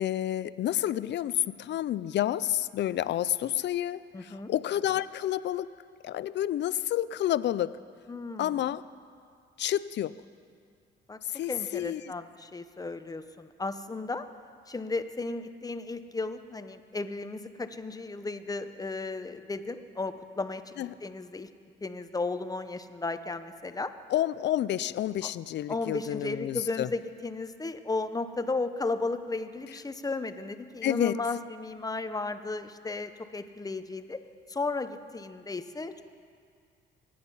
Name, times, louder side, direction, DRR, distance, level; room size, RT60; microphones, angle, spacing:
voice 1, 0.0-5.7 6.0-7.8 8.4-8.8 9.6-10.1 11.3-12.0 20.8-20.9 24.1-26.9 30.8-31.2, left 12 dB, 60° left, 17 dB, 0.5 m, -29 dB
voice 2, 4.1-4.5 8.1-8.6 11.1-11.2 11.5-14.3 14.7-21.5 21.8-23.9 25.2-25.3 25.7-34.2 34.5-36.0, left 3 dB, 20° left, 10 dB, 0.8 m, -34 dB
24.0 x 10.5 x 5.6 m, 2.3 s
cardioid pair, 90°, 20 cm